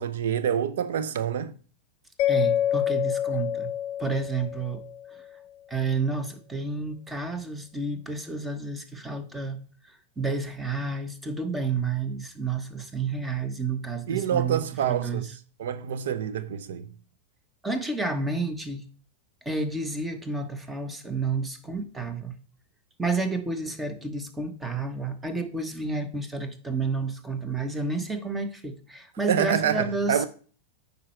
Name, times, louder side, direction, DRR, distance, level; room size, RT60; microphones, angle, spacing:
voice 1, 0.0-1.6 14.1-15.3 15.6-16.9 29.3-30.3, right 9 dB, 75° right, 0.7 m, -27 dB
Mallet percussion, 2.2-5.2, left 11 dB, 50° left, 0.5 m, -27 dB
voice 2, 2.3-3.7 4.0-4.8 5.7-9.6 9.8-15.3 17.6-18.9 19.4-22.4 23.0-30.2, right 4 dB, 10° right, 1.2 m, -30 dB
8.9 x 5.5 x 4.5 m
hypercardioid pair, 115°, 0 cm